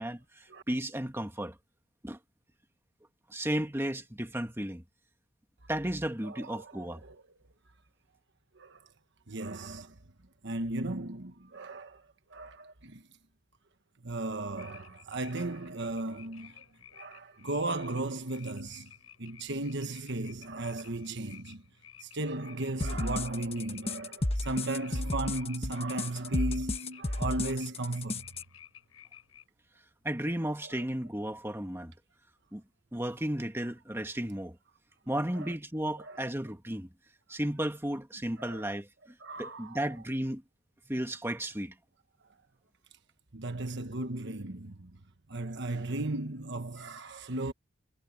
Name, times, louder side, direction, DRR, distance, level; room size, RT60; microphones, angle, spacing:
voice 1, 0.0-1.6 2.0-2.2 3.3-4.8 5.7-7.0 30.0-31.9 32.5-32.6 32.9-34.6 35.1-36.9 37.3-40.4 40.9-41.7, right 1 dB, 10° right, 1.8 m, -34 dB
voice 2, 6.2-7.2 8.5-8.9 9.3-10.0 10.4-13.0 14.0-16.6 16.9-18.9 19.2-21.6 22.0-28.3 35.3-35.5 36.0-36.2 38.4-38.7 39.2-39.8 43.3-45.0 45.3-47.5, right 2 dB, 55° right, 1.3 m, -36 dB
sound 1, 14.6-29.4, left 9 dB, 75° left, 7.7 m, -55 dB
sound 2, 22.8-28.4, left 2 dB, 30° left, 1.3 m, -33 dB
head